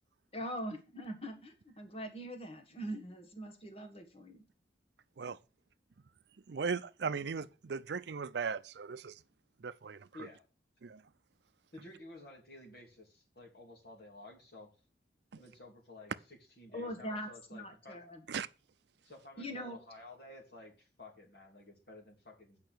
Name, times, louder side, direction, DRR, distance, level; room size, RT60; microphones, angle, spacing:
voice 1, 0.3-4.4 16.7-18.2 19.4-19.8, equal, 30° left, 1.6 m, -42 dB
voice 2, 6.5-9.2 9.6-10.1 10.8-11.0 15.3-15.4 18.3-18.5, right 5 dB, 65° right, 0.5 m, -37 dB
voice 3, 11.7-14.7 15.4-18.0 19.0-22.6, left 2 dB, 55° left, 3.0 m, -53 dB
8.7 x 5.6 x 6.2 m
head